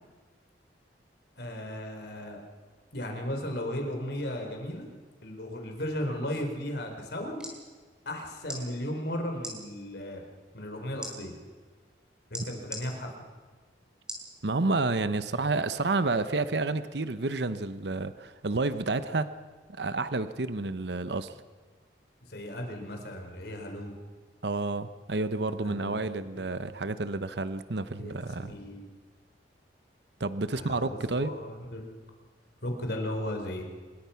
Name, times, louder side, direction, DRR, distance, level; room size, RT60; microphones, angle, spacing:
voice 1, 1.4-2.4 2.9-4.8 5.2-7.4 8.1-10.2 10.5-11.3 12.3-13.1 22.3-23.9 25.6-26.0 26.3-26.4 28.0-28.1 28.5-28.9 30.5-31.9 32.6-33.6, left 1 dB, 65° left, 3 dB, 4.4 m, -35 dB
sound 1, 7.4-7.6 8.4-8.6 9.4-9.6 11.0-11.1 12.3-12.8 14.1-14.3 14.9-15.0, equal, 5° right, 4.9 m, -38 dB
voice 2, 14.4-19.3 19.7-21.3 24.4-28.5 30.2-31.3, right 3 dB, 70° right, 12 dB, 0.9 m, -30 dB
26.0 x 21.5 x 5.9 m, 1.5 s
head